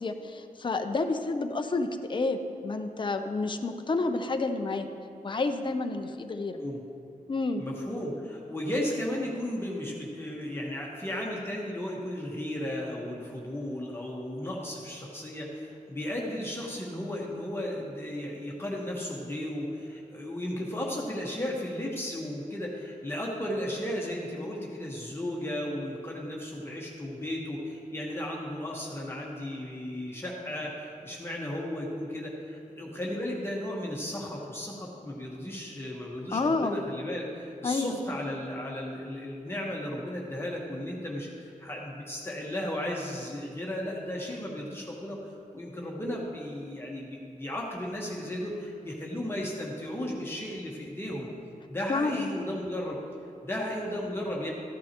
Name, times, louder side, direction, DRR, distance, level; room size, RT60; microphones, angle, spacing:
voice 1, 0.0-4.9 5.2-6.6 7.3-7.6 36.3-36.7 37.6-38.0 51.9-52.3, left 3 dB, 35° left, 6 dB, 0.6 m, -29 dB
voice 2, 7.6-45.2 45.5-51.3 51.7-53.0 53.4-54.5, left 1 dB, 15° left, -3 dB, 1.3 m, -35 dB
14.0 x 9.7 x 3.0 m, 2.6 s
wide cardioid pair, 105°, 14 cm